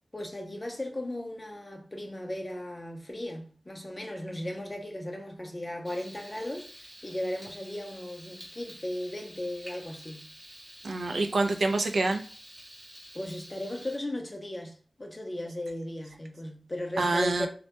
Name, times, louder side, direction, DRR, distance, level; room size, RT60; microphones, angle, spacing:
voice 1, 0.1-6.7 7.0-10.3 13.1-17.5, left 1 dB, 25° left, 0.5 m, -36 dB
Frying (food), 5.8-14.0, equal, 30° right, 0.7 m, -49 dB
voice 2, 10.8-12.2 17.0-17.5, right 2 dB, 75° right, 0.3 m, -26 dB
2.1 x 2.1 x 2.7 m
wide cardioid pair, 85°, 0 cm